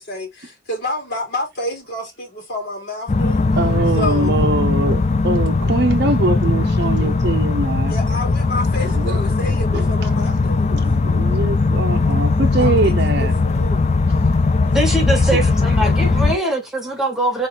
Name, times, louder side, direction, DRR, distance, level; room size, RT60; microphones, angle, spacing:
voice 1, 0.0-3.5 3.9-4.4 7.9-10.9 12.6-13.9 14.6-14.8 16.1-16.3 16.8-17.2, left 1 dB, 60° left, 2.4 m, -29 dB
sound 1, 3.1-16.4, left 3 dB, 35° left, 0.5 m, -18 dB
voice 2, 3.6-7.9 8.9-9.9 10.7-13.3 15.3-15.5, right 2 dB, 60° right, 0.7 m, -22 dB
voice 3, 14.7-17.5, right 1 dB, ahead, 1.7 m, -22 dB
3.7 x 3.1 x 4.2 m
head